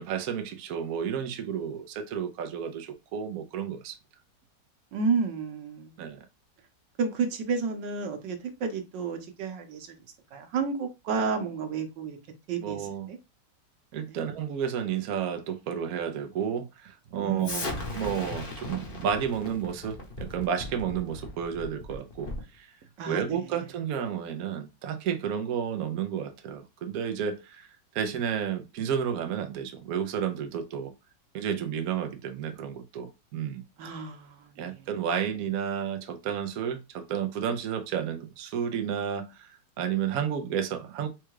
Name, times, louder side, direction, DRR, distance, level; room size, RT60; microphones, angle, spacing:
voice 1, 0.0-4.0 6.0-6.3 12.6-13.1 13.9-22.7 23.1-27.7 27.9-30.9 31.3-33.6 34.6-39.5 39.8-41.1, right 8 dB, 65° right, 1.1 m, -31 dB
voice 2, 4.9-6.0 7.0-10.0 10.3-12.2 12.5-13.2 14.1-14.2 17.2-17.9 23.0-23.4 33.8-34.9, right 5 dB, 90° right, 1.6 m, -31 dB
Explosion, 17.4-22.6, left 2 dB, 35° left, 1.1 m, -38 dB
4.5 x 2.4 x 4.7 m
omnidirectional pair, 1.9 m